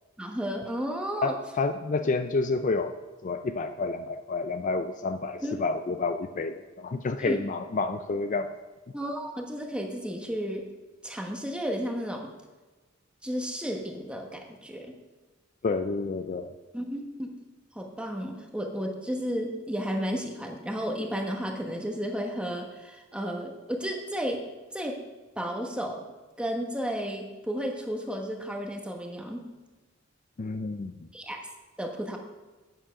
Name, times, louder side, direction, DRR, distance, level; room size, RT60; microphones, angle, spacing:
voice 1, 0.2-1.3 5.4-5.7 7.2-7.4 8.9-10.7 11.0-12.3 13.2-14.9 16.7-17.3 17.7-24.4 24.7-25.0 25.4-26.0 26.4-29.4 31.1-31.4 31.8-32.2, equal, 5° right, 2 dB, 1.1 m, -33 dB
voice 2, 1.2-2.9 3.2-8.5 15.6-16.5 30.4-31.1, left 3 dB, 40° left, 8 dB, 0.4 m, -29 dB
8.7 x 7.2 x 5.8 m, 1.2 s
head